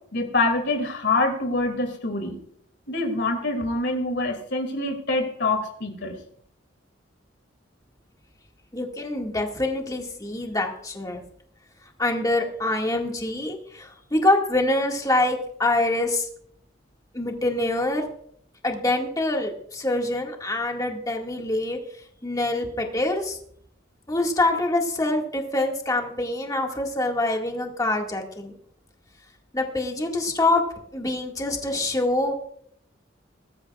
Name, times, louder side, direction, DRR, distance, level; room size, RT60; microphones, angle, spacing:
voice 1, 0.1-2.4 2.9-6.2, left 2 dB, 65° left, 5 dB, 2.4 m, -25 dB
voice 2, 8.7-11.2 12.0-16.3 17.1-18.1 18.6-21.8 22.2-23.4 24.1-28.6 29.5-30.6 30.9-32.3, left 2 dB, 20° left, 1 dB, 1.9 m, -25 dB
21.5 x 13.0 x 2.4 m, 0.64 s
head